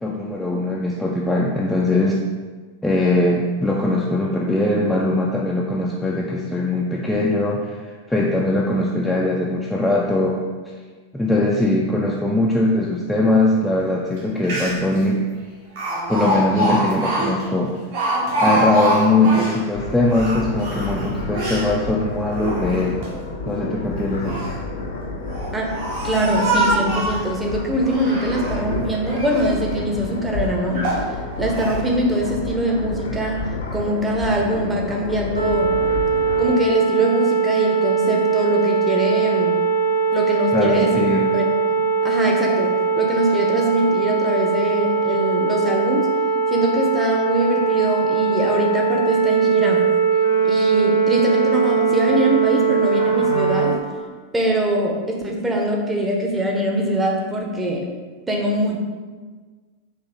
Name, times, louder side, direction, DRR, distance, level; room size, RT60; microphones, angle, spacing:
voice 1, 0.0-2.2 2.8-10.4 11.1-15.2 16.1-17.8 18.4-23.0 23.5-24.4 40.5-41.3, left 2 dB, 5° left, -3 dB, 0.4 m, -21 dB
Speech, 14.2-14.3 14.4-15.0 15.8-19.6 20.1-21.7 22.3-23.1 24.0-24.6 25.3-27.3 27.8-28.6 29.0-29.5 30.1-30.2 30.7-31.1 31.5-31.8, right 1 dB, 55° right, 1.1 m, -24 dB
sound 1, 19.7-36.5, left 3 dB, 70° left, 0.5 m, -30 dB
voice 2, 26.0-31.1 31.4-33.4 33.7-35.7 36.4-39.6 40.1-41.0 41.3-41.4 42.0-46.1 46.5-49.8 50.4-53.8 54.3-57.9 58.3-58.8, right 1 dB, 15° right, -1 dB, 0.7 m, -22 dB
sound 2, 35.3-53.8, right 5 dB, 90° right, 0.6 m, -20 dB
4.4 x 2.7 x 3.5 m, 1.4 s
figure-of-eight pair, 90°, 0 cm